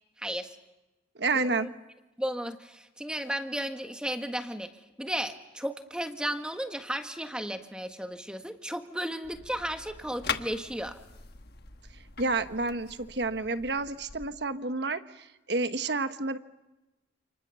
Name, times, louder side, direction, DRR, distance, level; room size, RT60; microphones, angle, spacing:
voice 1, 0.2-0.6 1.3-1.7 2.2-4.7 5.0-11.0, equal, 5° right, 6 dB, 1.6 m, -34 dB
voice 2, 1.1-1.7 12.2-16.4, right 3 dB, 60° right, 10 dB, 1.2 m, -30 dB
sound 1, 9.2-14.3, left 6 dB, 55° left, 1.4 m, -41 dB
29.0 x 29.0 x 7.0 m, 1.0 s
head